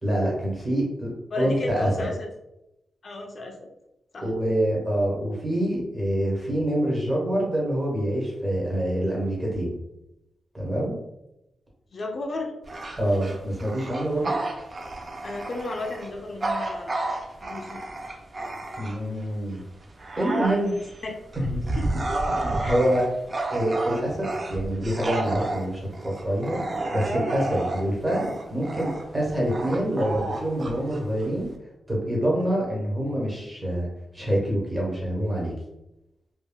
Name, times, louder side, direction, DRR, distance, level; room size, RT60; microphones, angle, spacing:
voice 1, 0.0-1.1 1.3-2.1 4.2-9.7 10.5-11.0 13.0-14.4 18.8-19.6 20.2-20.7 21.4-21.6 22.3-23.1 23.5-26.6 26.9-31.5 31.9-33.9 34.1-35.5, right 1 dB, 15° right, -4 dB, 1.1 m, -26 dB
voice 2, 1.3-2.3 3.0-3.6 4.1-4.3 11.9-12.5 14.2-14.4 15.2-17.0 17.4-17.8 21.0-21.1 21.8-21.9 22.6-22.8, left 2 dB, 45° left, 1 dB, 0.5 m, -33 dB
Bark / Growling, 12.6-19.2 19.7-31.6, right 2 dB, 35° right, 0.4 m, -31 dB
3.5 x 2.1 x 2.2 m, 0.90 s
wide cardioid pair, 130°, 0 cm